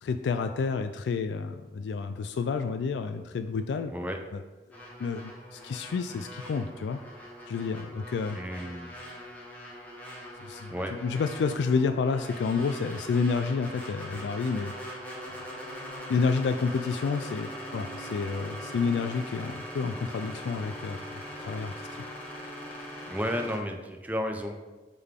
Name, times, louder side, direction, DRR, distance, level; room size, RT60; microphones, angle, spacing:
voice 1, 0.0-3.9 4.3-4.4 5.0-7.0 7.5-8.4 10.4-14.7 16.1-22.0, left 5 dB, 75° left, 9 dB, 0.3 m, -30 dB
sound 1, 4.7-23.6, equal, 10° left, 1.2 m, -41 dB
voice 2, 8.3-8.9 10.7-11.0 23.1-24.5, equal, 10° right, 4 dB, 0.5 m, -32 dB
7.9 x 3.7 x 3.6 m, 1.2 s
head